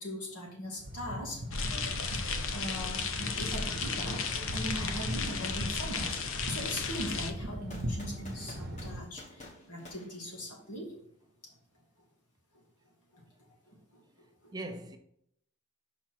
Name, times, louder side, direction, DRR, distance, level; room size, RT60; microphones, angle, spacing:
voice 1, 0.0-1.4 2.5-10.9 13.1-13.2 13.7-14.0 14.4-14.5, equal, 90° left, 2.6 m, -40 dB
sound 1, 0.8-9.0, equal, 45° right, 0.9 m, -39 dB
sound 2, 1.5-7.3, left 5 dB, 60° left, 0.7 m, -34 dB
voice 2, 1.8-2.3 14.5-15.0, right 2 dB, 20° right, 0.5 m, -43 dB
sound 3, 7.7-10.9, left 2 dB, 30° left, 1.3 m, -51 dB
5.7 x 4.5 x 6.0 m
head